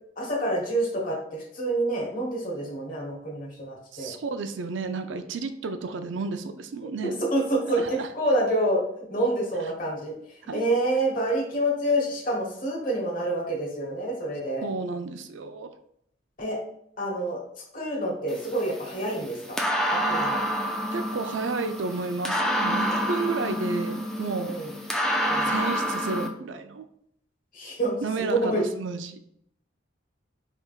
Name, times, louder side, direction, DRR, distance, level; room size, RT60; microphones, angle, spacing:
voice 1, 0.2-4.1 7.0-8.8 9.1-14.7 16.4-16.6 17.0-17.4 17.7-19.6 19.9-20.4 24.5-24.7 25.3-25.5 27.5-27.9 28.3-28.7, right 1 dB, 45° left, -1 dB, 1.2 m, -27 dB
voice 2, 3.9-7.2 7.7-8.1 10.5-10.7 14.6-15.7 20.9-24.6 25.4-26.8 28.0-29.2, right 4 dB, 75° right, 9 dB, 0.4 m, -32 dB
sound 1, 18.3-26.3, equal, 5° left, 0.4 m, -28 dB
4.5 x 3.4 x 2.4 m, 0.71 s
head